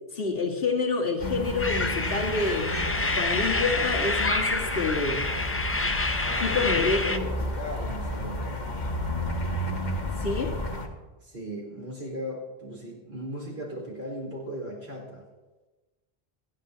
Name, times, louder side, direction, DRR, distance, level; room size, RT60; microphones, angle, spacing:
voice 1, 0.1-2.7 3.1-5.3 6.4-7.3 10.2-10.5, left 3 dB, 65° left, -1 dB, 2.0 m, -28 dB
sound 1, 1.2-10.9, left 1 dB, 45° left, 1.4 m, -32 dB
sound 2, 1.6-7.2, left 2 dB, 20° left, 0.4 m, -28 dB
voice 2, 6.2-8.9 11.2-15.2, equal, 85° right, -2 dB, 4.5 m, -37 dB
26.5 x 10.0 x 2.8 m, 1.2 s
omnidirectional pair, 1.0 m